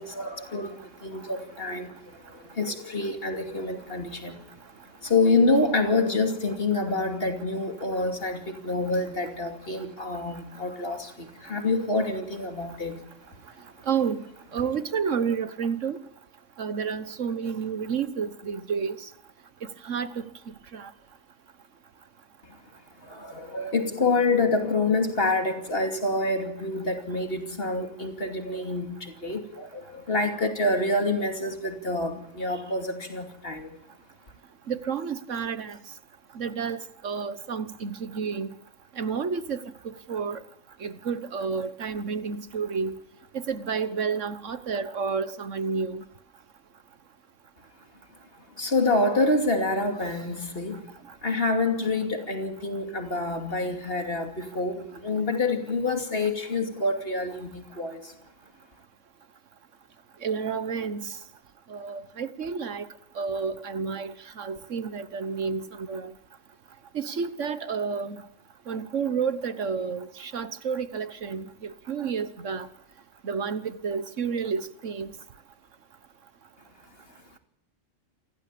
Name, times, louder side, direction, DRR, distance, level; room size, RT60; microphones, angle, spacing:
voice 1, 0.0-1.9 2.6-4.4 5.0-13.0 23.1-33.7 48.6-50.8 51.2-58.0, left 2 dB, 45° left, 2.8 m, -27 dB
voice 2, 13.9-14.2 14.5-16.0 16.6-19.0 19.9-20.1 20.7-20.9 34.7-35.8 36.4-36.8 37.0-38.5 39.0-39.6 40.1-40.4 40.8-42.9 43.5-46.0 60.2-61.1 61.7-62.9 63.2-66.1 66.9-68.2 68.7-72.7 73.2-75.1, right 6 dB, 65° right, 1.5 m, -30 dB
28.0 x 15.0 x 8.5 m
omnidirectional pair, 1.4 m